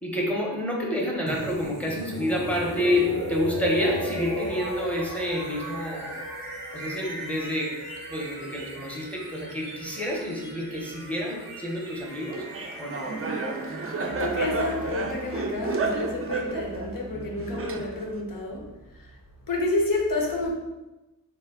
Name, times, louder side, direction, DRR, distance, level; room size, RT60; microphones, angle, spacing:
voice 1, 0.0-6.2 6.7-7.8 8.1-12.5 12.8-13.1, left 1 dB, 5° left, 0.7 m, -28 dB
sound 1, 1.3-17.1, right 1 dB, 80° right, 0.8 m, -37 dB
Laughter, 12.3-18.2, right 3 dB, 40° right, 0.4 m, -31 dB
voice 2, 14.0-19.1 19.5-20.5, left 2 dB, 70° left, 0.7 m, -29 dB
3.3 x 2.2 x 3.5 m
wide cardioid pair, 70°, 35 cm